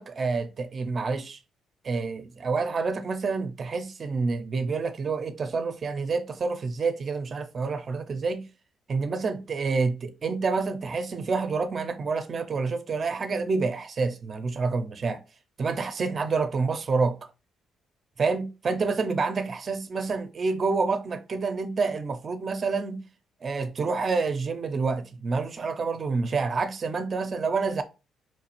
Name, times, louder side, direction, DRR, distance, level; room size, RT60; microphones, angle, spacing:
voice 1, 0.0-1.4 1.8-8.5 8.9-15.2 15.6-17.2 18.2-23.0 23.4-27.8, right 4 dB, 40° right, 0.5 m, -28 dB
4.4 x 2.4 x 2.9 m
cardioid pair, 90°, 0 cm